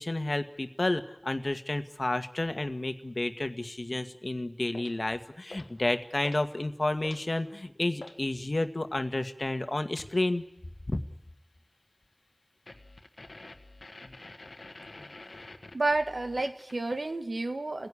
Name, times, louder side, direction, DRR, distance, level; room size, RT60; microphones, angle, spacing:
voice 1, 0.0-10.4 10.9-11.0, left 2 dB, 60° left, 8 dB, 1.6 m, -31 dB
sound 1, 4.7-5.0 5.5-5.8 6.2-6.5 6.8-8.2 10.0-10.2 12.7-17.1, left 2 dB, 80° left, 1.4 m, -48 dB
voice 2, 15.7-17.9, right 2 dB, 80° right, 7 dB, 1.7 m, -30 dB
29.0 x 16.5 x 9.9 m, 0.85 s
wide cardioid pair, 45°, 0 cm